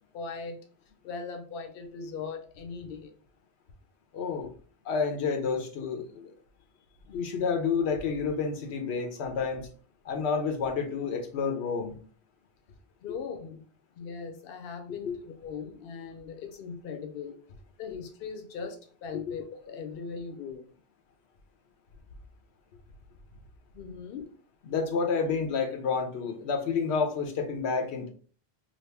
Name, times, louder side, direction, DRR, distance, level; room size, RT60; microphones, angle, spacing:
voice 1, 0.1-0.6 1.0-3.1 13.0-13.6 14.0-17.3 17.8-20.7 23.7-24.3, left 5 dB, 65° left, 5 dB, 0.8 m, -39 dB
voice 2, 4.1-4.5 4.8-6.3 7.1-9.7 10.0-12.0 15.0-15.2 19.1-19.4 24.7-28.1, left 5 dB, 90° left, 4 dB, 1.0 m, -29 dB
2.9 x 2.5 x 3.3 m, 0.41 s
omnidirectional pair, 1.1 m